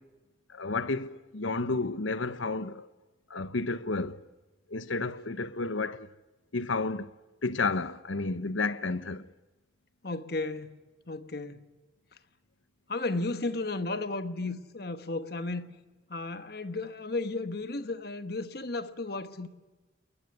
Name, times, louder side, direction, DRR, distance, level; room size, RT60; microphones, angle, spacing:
voice 1, 0.5-2.9 3.3-4.2 4.7-6.1 6.5-7.1 7.4-9.3, left 3 dB, 85° left, 1.0 m, -31 dB
voice 2, 10.0-10.8 11.1-11.6 12.9-15.7 16.1-19.5, left 2 dB, 55° left, 1.3 m, -34 dB
22.0 x 20.0 x 9.7 m
head